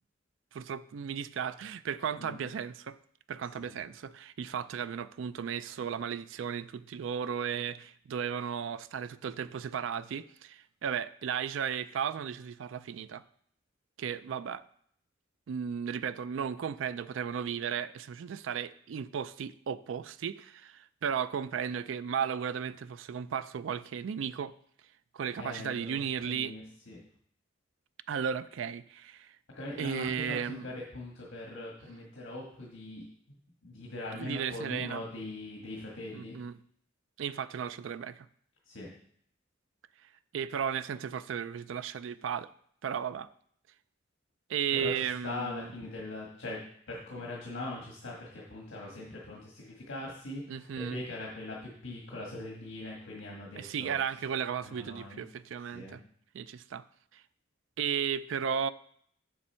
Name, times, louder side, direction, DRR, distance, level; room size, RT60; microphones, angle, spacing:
voice 1, 0.5-3.0 3.3-13.2 14.0-14.6 15.5-24.5 25.1-26.5 28.1-29.4 29.8-30.7 34.1-35.0 36.1-36.6 37.2-38.3 40.3-42.5 42.8-43.3 44.5-45.7 50.5-51.0 53.6-56.0 56.3-56.8 57.1-57.2 57.8-58.7, right 7 dB, 80° right, 14 dB, 0.4 m, -35 dB
voice 2, 2.2-2.5 3.5-3.8 25.4-27.0 29.5-30.1 30.5-33.0 33.6-36.3 38.7-38.9 44.8-46.6 46.9-54.0 54.6-55.2 55.7-56.0, left 2 dB, 80° left, -3 dB, 1.6 m, -41 dB
7.2 x 6.9 x 4.3 m, 0.64 s
head